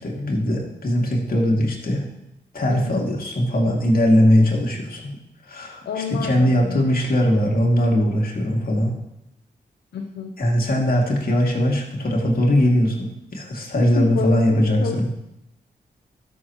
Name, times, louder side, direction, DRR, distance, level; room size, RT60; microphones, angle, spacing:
voice 1, 0.0-2.1 2.5-5.1 5.5-5.8 6.1-8.9 10.4-15.1, equal, 55° left, -1 dB, 2.3 m, -20 dB
voice 2, 2.7-3.1 5.8-6.8 9.9-10.3 13.8-15.1, left 6 dB, 75° left, 4 dB, 0.6 m, -29 dB
13.0 x 6.1 x 3.0 m, 0.85 s
cardioid pair, 50°, 18 cm